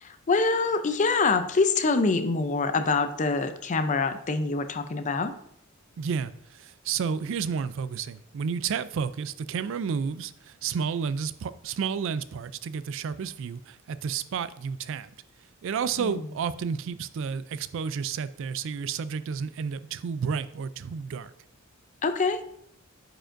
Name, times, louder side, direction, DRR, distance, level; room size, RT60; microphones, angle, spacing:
voice 1, 0.0-5.3 16.0-16.3 22.0-22.4, left 4 dB, 35° left, 0.5 m, -25 dB
voice 2, 6.0-15.1 15.6-21.3, right 6 dB, 65° right, 0.3 m, -31 dB
8.9 x 4.9 x 2.5 m
head